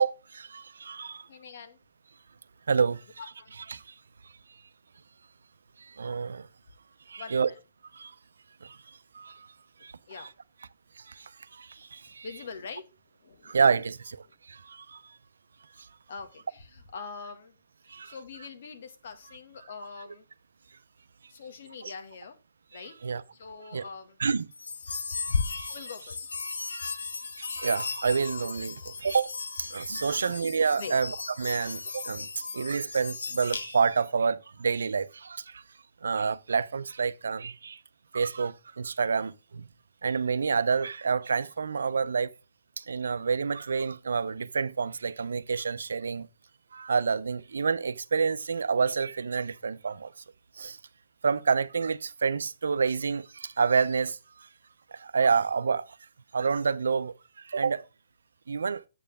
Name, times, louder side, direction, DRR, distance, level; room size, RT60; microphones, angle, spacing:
voice 1, 0.0-1.3 2.7-3.0 3.7-3.9 5.8-6.5 7.1-7.5 7.9-8.1 8.6-9.5 9.8-9.9 10.2-10.3 11.0-12.3 13.4-15.2 15.8-15.9 17.9-18.1 21.8-21.9 22.7-23.2 23.7-23.8 24.2-24.5 24.9-25.1 25.6-25.7 26.7-27.1 27.4-29.3 29.6-32.3 32.5-35.6 36.0-37.8 38.1-39.7 40.0-42.3 42.8-46.3 46.7-50.1 50.6-50.8 51.2-54.5 54.9-55.9 56.3-57.9 58.5-58.8, right 5 dB, 85° right, 0.6 m, -28 dB
voice 2, 1.3-1.8 3.2-3.5 7.2-7.6 10.1-10.3 12.2-12.8 13.2-13.6 14.3-14.4 16.1-17.5 17.9-20.3 21.3-22.3 22.7-24.2 25.7-26.3 30.1-30.2 30.7-30.9, left 5 dB, 65° left, 1.9 m, -43 dB
sound 1, 24.5-34.0, left 4 dB, 85° left, 1.1 m, -36 dB
8.1 x 6.8 x 3.5 m
hypercardioid pair, 145°, 0 cm